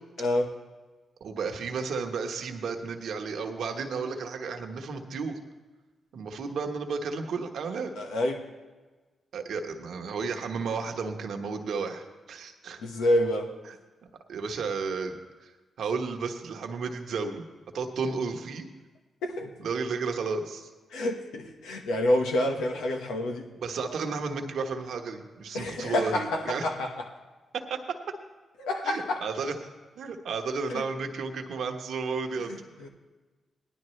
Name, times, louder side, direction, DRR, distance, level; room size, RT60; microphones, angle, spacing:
voice 1, 0.2-0.5 8.0-8.4 12.8-13.5 19.2-19.5 20.9-23.5 25.5-26.9 28.6-29.3 30.7-30.9 32.5-32.9, left 1 dB, 90° left, 2 dB, 1.4 m, -28 dB
voice 2, 1.2-5.4 6.1-7.9 9.3-12.8 13.7-13.8 14.3-15.5 15.8-17.5 17.7-18.7 19.6-20.7 23.6-26.6 27.5-27.8 28.8-29.5 30.0-32.5, right 4 dB, 75° right, 4 dB, 1.2 m, -33 dB
18.0 x 11.0 x 3.2 m, 1.3 s
supercardioid pair, 55°, 0 cm